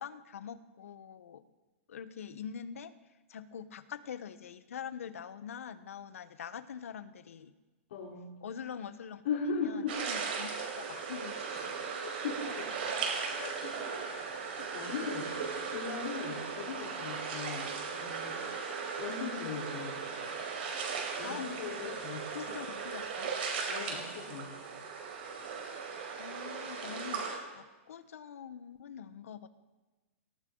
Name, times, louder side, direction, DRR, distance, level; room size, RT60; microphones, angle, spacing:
voice 1, 0.0-1.4 1.9-2.9 3.3-7.5 8.4-9.2 9.6-11.7 21.2-21.4 21.8-22.0 22.4-23.3 25.6-29.5, left 8 dB, 85° left, 12 dB, 1.2 m, -44 dB
voice 2, 7.9-8.3 9.2-10.0 12.0-13.0 13.3-18.3 19.0-20.0 21.2-22.5 23.7-24.5, left 5 dB, 55° left, -5 dB, 4.1 m, -39 dB
sound 1, 9.9-27.4, right 5 dB, 50° right, 5.2 m, -37 dB
19.0 x 18.0 x 4.0 m, 1.2 s
supercardioid pair, 175°, 7 cm